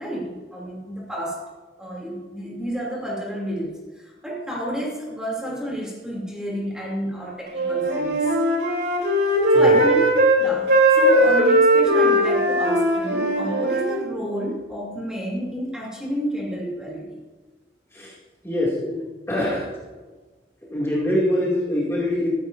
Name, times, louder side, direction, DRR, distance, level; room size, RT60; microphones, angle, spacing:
voice 1, 0.0-1.4 1.8-8.3 9.5-10.0 10.4-17.2, equal, 5° right, -4 dB, 2.9 m, -30 dB
Wind instrument woodwind instrument, 7.5-10.4 10.7-14.0, right 1 dB, 70° right, 3.4 m, -18 dB
voice 2, 18.4-19.7 20.7-22.3, left 1 dB, 15° left, -6 dB, 2.5 m, -24 dB
15.0 x 14.0 x 2.7 m, 1.3 s
head